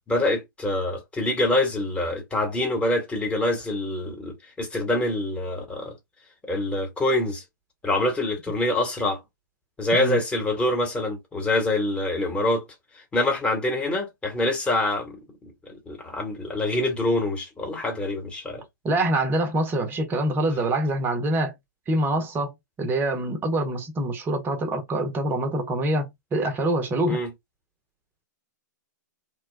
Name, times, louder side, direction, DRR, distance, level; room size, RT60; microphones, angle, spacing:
voice 1, 0.1-5.9 6.5-7.4 7.8-9.2 9.8-12.6 13.1-18.6 27.1-27.3, left 1 dB, 10° left, 1.3 m, -25 dB
voice 2, 18.8-21.5 21.9-22.5 22.8-27.2, right 1 dB, 20° right, 0.8 m, -25 dB
3.0 x 2.2 x 3.3 m
figure-of-eight pair, 110°, 10 cm